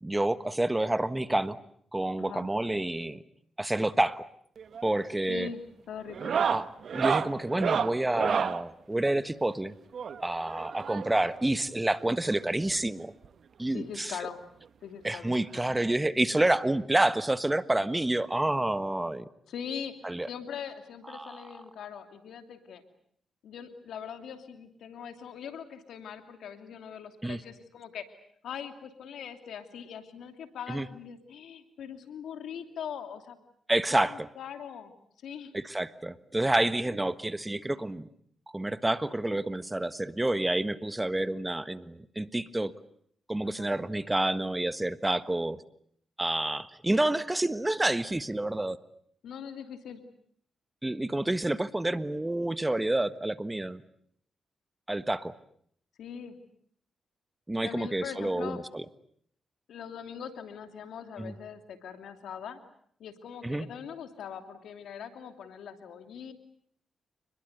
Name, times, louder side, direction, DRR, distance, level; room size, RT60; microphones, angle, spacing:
voice 1, 0.0-1.6 1.9-3.2 3.6-4.2 4.8-5.5 6.5-6.6 6.9-9.7 10.2-13.1 13.6-14.1 15.0-19.3 20.0-20.3 21.1-21.6 27.2-27.4 30.7-30.9 33.7-34.3 35.5-38.1 38.5-42.7 43.3-45.6 46.2-48.8 50.8-53.8 54.9-55.3 57.5-58.8 61.2-61.3 63.4-63.7, right 1 dB, 15° right, 13 dB, 1.4 m, -28 dB
voice 2, 2.2-2.5 5.3-6.4 13.7-14.4 14.8-15.3 19.5-22.8 23.4-28.0 28.4-33.4 34.0-34.9 35.2-35.5 43.4-43.7 49.2-50.0 56.0-56.4 57.6-58.6 59.7-62.6 63.0-66.3, left 8 dB, 80° left, 8 dB, 2.8 m, -41 dB
sound 1, 4.6-4.9 5.2-5.5 6.1-8.6 9.9-11.3 12.4-12.5 12.7-12.8 13.2-13.3 14.6-14.7 16.1-16.2, right 7 dB, 65° right, 1.2 m, -30 dB
29.0 x 21.5 x 8.1 m, 0.66 s
supercardioid pair, 55°, 0 cm